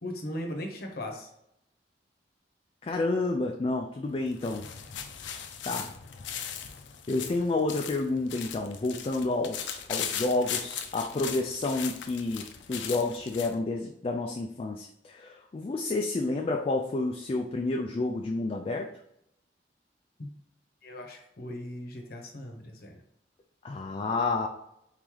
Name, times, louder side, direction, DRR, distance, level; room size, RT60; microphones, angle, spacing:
voice 1, 0.0-1.3 20.2-20.3 20.8-23.0, left 1 dB, 55° left, 2 dB, 0.9 m, -38 dB
voice 2, 2.8-4.7 5.7-5.9 7.1-18.9 23.6-24.5, left 2 dB, 30° left, 1 dB, 0.3 m, -30 dB
sound 1, 4.1-13.6, left 8 dB, 90° left, 0.5 m, -38 dB
4.0 x 3.1 x 3.7 m, 0.76 s
head